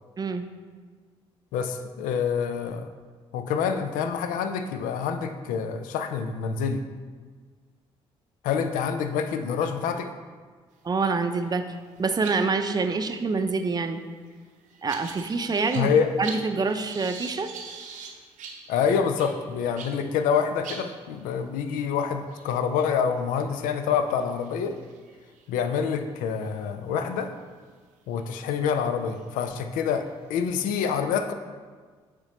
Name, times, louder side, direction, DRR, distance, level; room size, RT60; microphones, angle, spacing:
voice 1, 0.2-0.5 10.8-11.7 12.0-14.0 14.8-15.9 16.2-17.5, right 4 dB, 30° right, 7 dB, 0.6 m, -26 dB
voice 2, 1.5-2.9 3.3-6.8 8.4-10.1 15.7-16.1 18.7-24.8 25.5-27.3 28.1-31.3, left 6 dB, 70° left, 8 dB, 0.5 m, -26 dB
sound 1, 11.1-11.6 11.8-20.0 20.4-20.5 20.6-26.5 27.0-27.3 28.1-28.2 28.8-30.6, right 5 dB, 65° right, 0.8 m, -45 dB
7.9 x 3.7 x 4.2 m, 1.5 s
hypercardioid pair, 50°, 14 cm